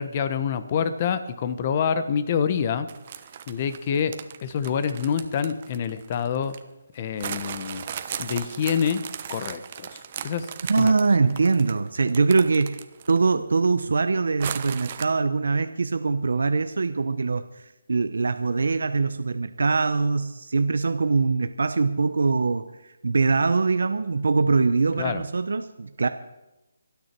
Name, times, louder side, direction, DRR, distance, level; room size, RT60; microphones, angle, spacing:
voice 1, 0.0-2.9 3.5-6.6 6.9-7.8 8.2-9.0 9.3-10.5 10.8-10.9 25.0-25.2, left 7 dB, 30° left, 12 dB, 1.2 m, -27 dB
sound 1, 2.9-6.6 7.2-13.3 13.6-13.7 14.4-15.0, right 8 dB, 35° right, 1.1 m, -36 dB
voice 2, 10.7-12.8 13.1-26.1, right 4 dB, 75° right, 10 dB, 0.9 m, -23 dB
25.5 x 9.6 x 4.6 m, 0.97 s
hypercardioid pair, 160°, 0 cm